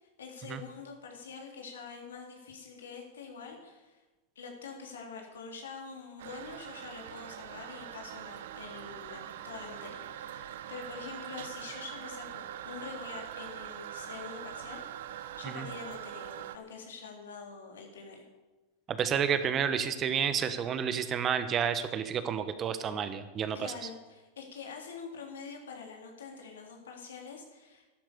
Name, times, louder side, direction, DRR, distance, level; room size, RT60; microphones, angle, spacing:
voice 1, 0.0-4.0 4.4-18.3 23.5-27.9, left 5 dB, 90° left, 1 dB, 3.6 m, -45 dB
Toilet flush, 6.2-16.6, right 11 dB, 75° right, 0.8 m, -43 dB
voice 2, 18.9-23.7, right 7 dB, 35° right, 11 dB, 1.3 m, -30 dB
12.0 x 11.5 x 6.9 m, 1.2 s
hypercardioid pair, 110°, 0 cm